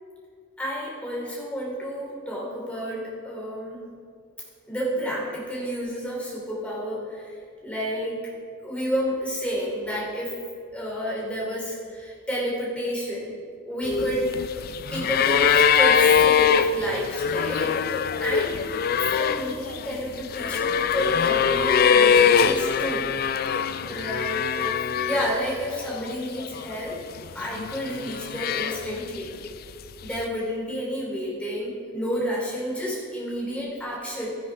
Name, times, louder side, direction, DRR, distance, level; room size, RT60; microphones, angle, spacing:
voice 1, 0.6-3.9 4.7-8.3 8.6-10.4 10.7-13.3 13.7-14.4 14.9-18.6 19.0-23.1 23.8-24.8 25.0-27.0 27.3-29.3 30.0-34.4, equal, 5° left, -5 dB, 2.7 m, -30 dB
sound 1, 13.8-25.5 25.8-26.7 27.5-29.2 30.2-30.3, left 7 dB, 45° left, 0.3 m, -22 dB
12.5 x 11.0 x 3.3 m, 2.3 s
head